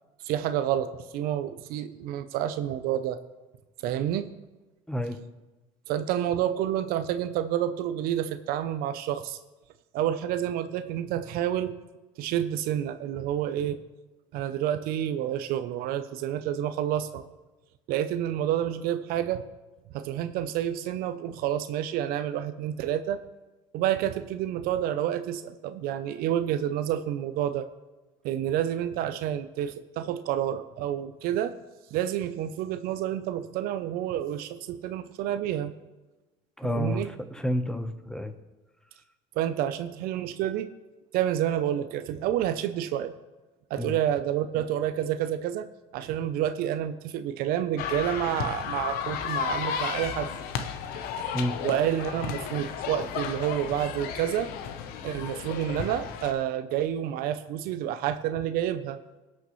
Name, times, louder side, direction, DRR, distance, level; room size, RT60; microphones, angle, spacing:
voice 1, 0.2-3.2 3.8-4.3 5.9-9.4 9.9-11.8 12.2-13.8 14.3-17.2 17.9-19.4 19.9-23.2 23.7-27.7 28.2-31.5 31.9-35.7 36.6-37.1 39.4-40.7 41.1-43.1 43.7-45.7 45.9-50.3 51.6-54.5 55.0-59.0, right 11 dB, 65° right, 11 dB, 0.6 m, -29 dB
voice 2, 36.6-37.0 37.3-38.3 43.8-43.9 51.3-51.6, equal, 5° left, 8 dB, 1.0 m, -29 dB
sound 1, 47.8-56.3, left 7 dB, 70° left, 0.9 m, -33 dB
18.5 x 6.5 x 3.1 m, 1.1 s
supercardioid pair, 85°, 16 cm